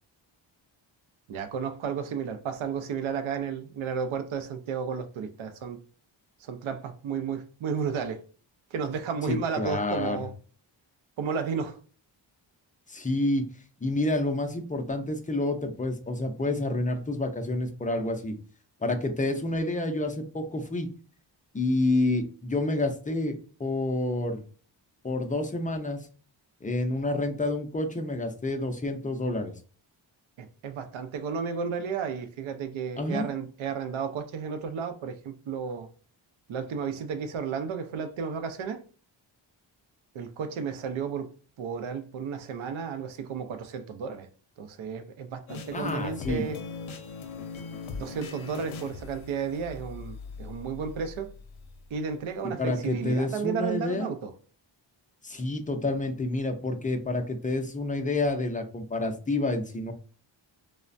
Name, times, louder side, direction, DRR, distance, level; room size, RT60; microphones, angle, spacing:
voice 1, 1.3-5.8 6.4-8.2 8.7-10.3 11.2-11.8 30.4-35.9 36.5-38.8 40.1-44.3 44.6-46.6 48.0-51.3 51.9-54.3, right 6 dB, 80° right, 0.6 m, -33 dB
voice 2, 9.3-10.3 12.9-13.4 13.8-18.4 18.8-20.9 21.5-24.4 25.0-26.1 26.6-29.5 33.0-33.3 45.7-46.5 52.6-54.1 55.2-59.9, left 2 dB, 20° left, 0.3 m, -29 dB
sound 1, 45.5-52.3, left 4 dB, 80° left, 0.6 m, -40 dB
3.2 x 2.1 x 2.4 m
wide cardioid pair, 120°, 47 cm